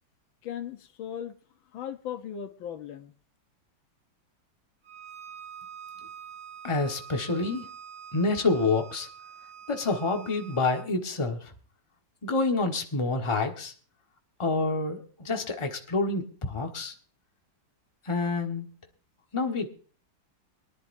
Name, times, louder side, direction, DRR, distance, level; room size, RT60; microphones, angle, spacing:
voice 1, 0.4-1.3 1.7-3.1, left 9 dB, 90° left, 1.7 m, -37 dB
Bowed string instrument, 4.8-10.9, right 8 dB, 60° right, 2.4 m, -46 dB
voice 2, 6.6-7.7 8.1-9.1 9.7-11.5 12.2-13.7 14.4-16.9 18.0-18.8 19.3-19.7, left 3 dB, 15° left, 1.3 m, -28 dB
23.0 x 11.0 x 2.7 m
omnidirectional pair, 2.1 m